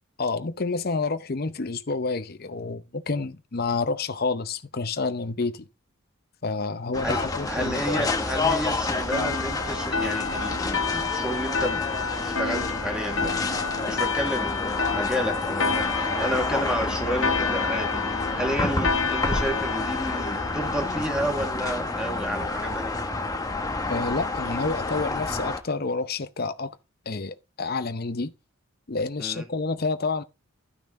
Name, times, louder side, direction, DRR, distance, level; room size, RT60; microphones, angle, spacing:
voice 1, 0.2-5.7 6.4-8.2 23.9-26.8 27.1-28.3 28.9-30.2, left 3 dB, 45° left, 0.7 m, -29 dB
sound 1, 6.9-25.6, left 3 dB, 15° left, 1.0 m, -29 dB
voice 2, 7.0-11.9 12.2-14.6 14.9-23.0 29.2-29.5, equal, 5° right, 1.8 m, -31 dB
sound 2, 9.1-22.2, left 5 dB, 60° left, 1.2 m, -30 dB
12.5 x 5.9 x 3.7 m
head